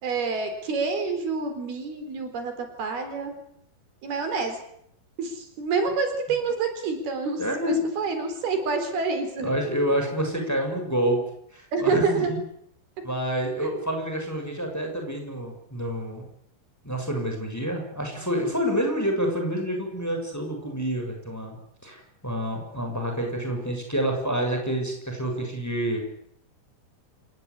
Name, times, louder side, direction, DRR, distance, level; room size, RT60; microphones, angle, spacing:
voice 1, 0.0-3.3 4.0-4.6 5.2-7.4 7.7-9.5 11.7-12.3 13.6-13.8, right 4 dB, 75° right, 7 dB, 6.0 m, -27 dB
voice 2, 7.4-7.8 9.4-11.2 11.5-12.4 13.0-16.3 16.8-21.6 21.8-26.0, equal, 5° left, 3 dB, 6.6 m, -28 dB
28.0 x 18.0 x 9.8 m, 0.70 s
omnidirectional pair, 4.5 m